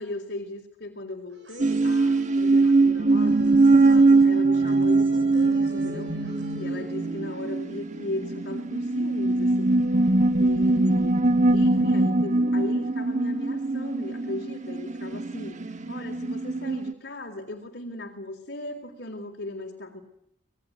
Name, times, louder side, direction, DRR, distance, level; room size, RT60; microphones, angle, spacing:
voice 1, 0.0-6.1 6.6-9.7 10.4-20.0, left 2 dB, 60° left, 2 dB, 3.9 m, -37 dB
sound 1, 1.3-7.2, right 2 dB, 75° right, 7.3 m, -48 dB
sound 2, 1.6-16.9, right 2 dB, 40° right, 1.3 m, -22 dB
27.0 x 20.5 x 9.5 m, 0.76 s
head